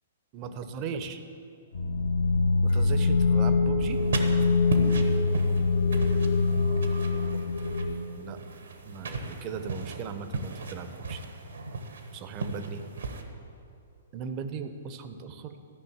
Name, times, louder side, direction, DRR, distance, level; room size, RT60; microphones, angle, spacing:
voice 1, 0.3-1.2 2.6-4.1 8.1-8.4 8.8-11.2 12.1-12.8 14.1-15.6, right 6 dB, 30° right, 9 dB, 0.8 m, -37 dB
sound 1, 1.7-8.0, left 3 dB, 60° left, 1.1 m, -24 dB
sound 2, 3.9-13.2, right 3 dB, 65° right, 1.2 m, -36 dB
13.0 x 5.9 x 7.8 m, 2.5 s
figure-of-eight pair, 115°, 0 cm